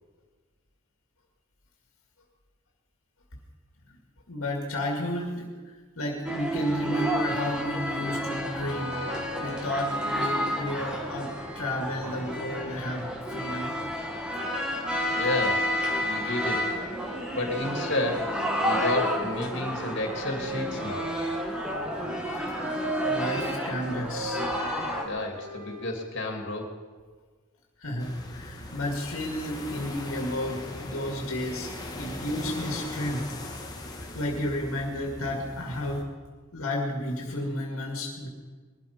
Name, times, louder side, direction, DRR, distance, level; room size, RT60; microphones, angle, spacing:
voice 1, 4.3-13.8 23.0-24.4 27.8-31.7 31.9-33.3 34.1-36.1 36.5-38.3, left 1 dB, 80° left, 0 dB, 2.1 m, -32 dB
sound 1, 6.3-25.0, equal, 5° right, 1.8 m, -30 dB
voice 2, 15.1-16.6 17.3-18.3 18.6-21.1 25.0-26.7, left 2 dB, 55° left, 3 dB, 2.9 m, -31 dB
Wind instrument woodwind instrument, 19.1-22.1 22.5-25.9, right 1 dB, 70° right, 2.1 m, -39 dB
sound 2, 28.0-36.0, left 2 dB, 20° left, 1.9 m, -40 dB
21.0 x 13.0 x 5.3 m, 1.4 s
head